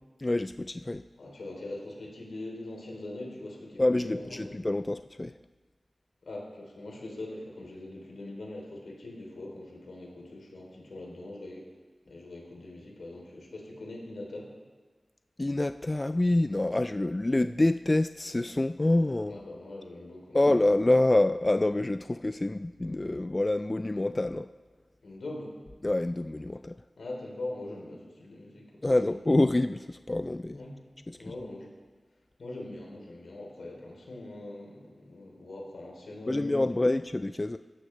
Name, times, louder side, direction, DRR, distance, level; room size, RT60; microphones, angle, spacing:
voice 1, 0.2-1.0 3.8-5.4 15.4-19.4 20.3-24.5 25.8-26.8 28.8-30.6 31.1-31.3 36.3-37.6, left 2 dB, 30° left, 10 dB, 0.3 m, -27 dB
voice 2, 1.2-4.5 6.2-11.7 12.1-14.5 19.3-20.5 25.0-25.6 27.0-28.8 29.1-29.2 30.5-30.8 31.2-31.7 32.4-36.5, left 2 dB, 85° left, -1 dB, 3.1 m, -42 dB
17.0 x 12.0 x 3.2 m, 1.3 s
cardioid pair, 55°, 0 cm